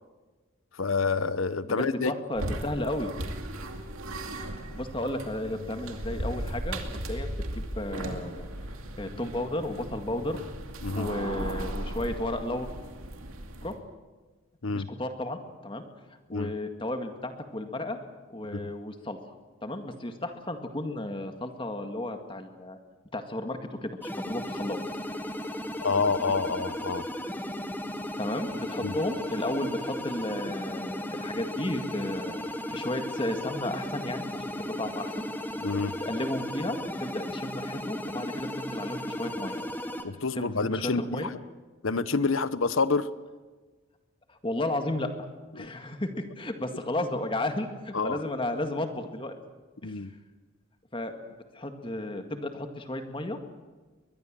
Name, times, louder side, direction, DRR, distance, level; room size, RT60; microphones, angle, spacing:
voice 1, 0.8-2.1 10.8-11.1 14.6-14.9 16.3-16.5 18.4-18.7 25.8-27.0 28.8-28.9 35.6-36.0 40.0-41.4 41.8-43.1 45.6-45.7 47.9-48.2 49.8-50.1, left 4 dB, 75° left, 15 dB, 1.0 m, -28 dB
voice 2, 1.6-3.1 4.7-8.5 9.0-10.4 10.9-12.7 13.6-13.7 14.7-15.9 16.3-18.0 18.3-19.2 19.6-22.8 23.1-24.8 28.2-32.4 32.7-35.3 36.0-39.6 40.3-40.4 40.7-41.3 44.3-45.1 45.5-46.1 46.4-49.3 49.8-49.9 50.9-51.2 51.5-53.6, left 1 dB, 25° left, 6 dB, 1.9 m, -33 dB
sound 1, 2.3-13.8, right 1 dB, 90° right, 2.5 m, -36 dB
sound 2, 24.0-40.0, left 1 dB, 10° left, 1.5 m, -35 dB
22.0 x 22.0 x 7.6 m, 1.3 s
head